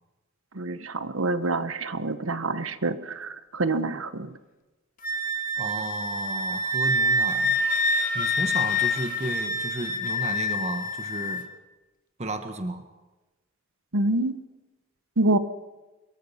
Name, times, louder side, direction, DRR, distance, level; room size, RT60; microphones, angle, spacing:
voice 1, 0.5-4.3 13.9-14.4 15.2-15.4, right 2 dB, 75° right, 12 dB, 1.3 m, -26 dB
Wind instrument woodwind instrument, 5.0-11.4, left 1 dB, 40° left, 2.2 m, -26 dB
voice 2, 5.6-7.6 8.1-11.5 12.2-12.8, right 2 dB, 35° right, 8 dB, 1.4 m, -33 dB
26.0 x 22.5 x 5.9 m, 1.1 s
head